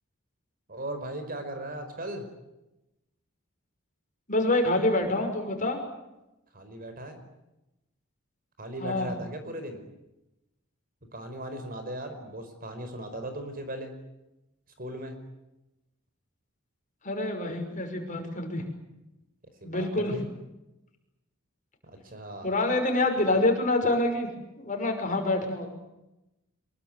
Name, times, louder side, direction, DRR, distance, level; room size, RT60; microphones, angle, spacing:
voice 1, 0.7-2.3 6.5-7.2 8.6-9.8 11.1-13.9 14.8-15.2 19.6-20.2 21.8-22.5, right 1 dB, 45° right, 8 dB, 5.0 m, -38 dB
voice 2, 4.3-5.8 8.8-9.1 17.0-18.6 19.6-20.2 22.4-24.3 24.6-25.7, left 2 dB, 35° left, 4 dB, 6.1 m, -26 dB
25.5 x 23.0 x 9.4 m, 0.94 s
head